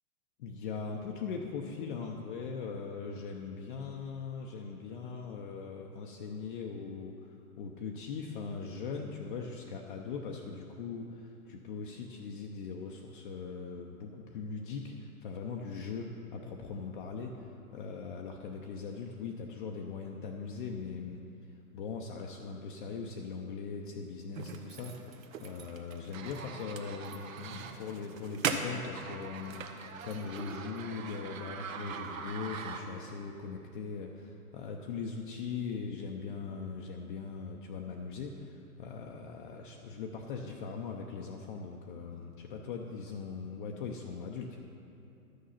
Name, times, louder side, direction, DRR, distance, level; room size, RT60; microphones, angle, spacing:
voice 1, 0.4-21.2 21.7-44.6, left 5 dB, 35° left, 1 dB, 0.6 m, -40 dB
sound 1, 24.3-33.2, right 6 dB, 60° right, 1.0 m, -40 dB
12.0 x 6.5 x 5.6 m, 2.7 s
hypercardioid pair, 140°, 46 cm